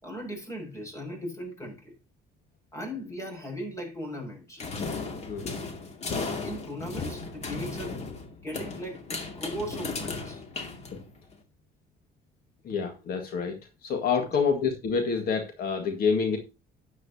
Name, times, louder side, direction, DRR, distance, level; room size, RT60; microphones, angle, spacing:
voice 1, 0.0-1.9 2.7-4.6 6.3-8.0 8.4-9.0 9.3-10.4, equal, 20° left, 6.7 m, -38 dB
sound 1, 4.6-11.3, left 4 dB, 40° left, 2.3 m, -35 dB
voice 2, 12.6-13.6 13.8-16.4, left 5 dB, 60° left, 1.9 m, -27 dB
13.0 x 9.4 x 2.8 m
cardioid pair, 110°, 17 cm